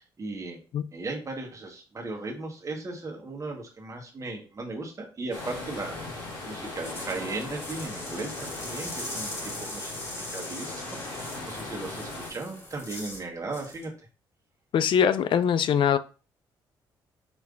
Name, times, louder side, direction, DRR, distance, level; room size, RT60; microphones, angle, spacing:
voice 1, 0.0-0.6 0.9-10.0 10.3-13.9, right 3 dB, 35° right, 1.4 m, -37 dB
sound 1, 5.3-12.3, left 2 dB, 75° left, 2.4 m, -38 dB
sound 2, 6.6-13.2 13.5-13.8, left 1 dB, 30° left, 2.1 m, -40 dB
voice 2, 14.7-16.0, left 8 dB, 60° left, 0.4 m, -22 dB
5.1 x 3.2 x 2.6 m
supercardioid pair, 70°, 9 cm